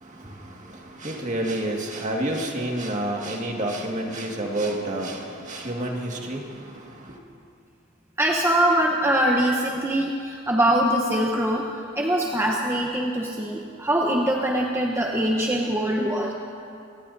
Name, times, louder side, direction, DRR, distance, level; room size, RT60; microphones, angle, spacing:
voice 1, 0.0-7.2, right 1 dB, 40° right, 0 dB, 1.9 m, -29 dB
voice 2, 8.2-11.6 12.0-16.3, right 1 dB, 15° right, -1 dB, 1.0 m, -23 dB
27.0 x 17.5 x 2.7 m, 2.4 s
head